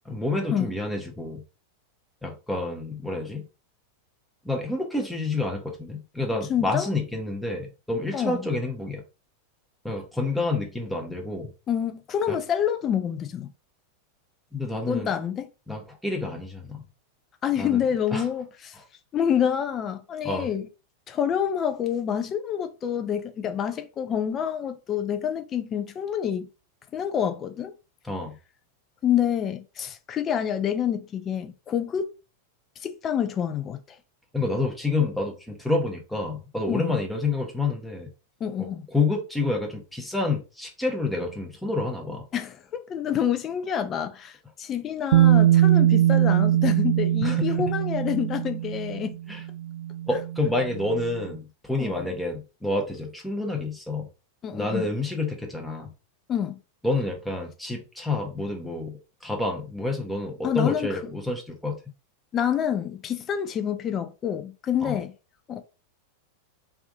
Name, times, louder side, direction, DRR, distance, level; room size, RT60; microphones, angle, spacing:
voice 1, 0.1-1.4 2.2-3.5 4.4-9.0 9.8-11.5 12.3-12.4 14.5-15.1 15.7-16.8 17.6-17.8 18.1-18.2 20.2-20.5 28.0-28.4 34.3-38.1 38.9-42.2 47.2-47.4 49.3-49.4 50.1-54.1 54.5-55.9 56.8-61.8 64.8-65.0, left 2 dB, ahead, 0.8 m, -28 dB
voice 2, 6.5-6.9 8.1-8.5 11.7-13.5 14.9-15.5 17.4-18.8 19.1-20.7 21.1-26.5 26.9-27.7 29.0-32.1 32.8-34.0 36.7-37.0 38.4-38.8 42.3-49.2 51.8-52.1 54.4-54.9 56.3-56.6 60.4-61.1 62.3-65.1 65.5-65.6, left 9 dB, 25° left, 0.5 m, -27 dB
Bass guitar, 45.1-51.2, right 12 dB, 60° right, 0.3 m, -22 dB
3.4 x 2.6 x 3.5 m
figure-of-eight pair, 90°, 0 cm